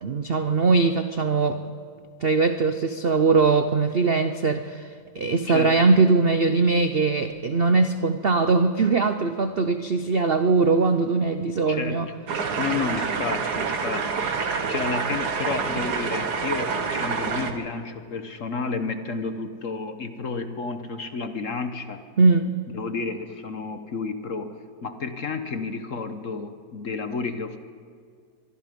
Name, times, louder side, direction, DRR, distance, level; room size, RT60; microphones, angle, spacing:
voice 1, 0.0-1.6 2.2-4.9 5.1-12.1 22.2-22.6, right 4 dB, 85° right, 9 dB, 0.5 m, -21 dB
voice 2, 5.5-5.9 11.7-12.1 12.6-22.0 22.7-27.6, left 4 dB, 50° left, 8 dB, 1.2 m, -31 dB
sound 1, 12.3-17.5, right 5 dB, 55° right, 1.8 m, -27 dB
24.0 x 23.5 x 5.3 m, 2.1 s
omnidirectional pair, 2.1 m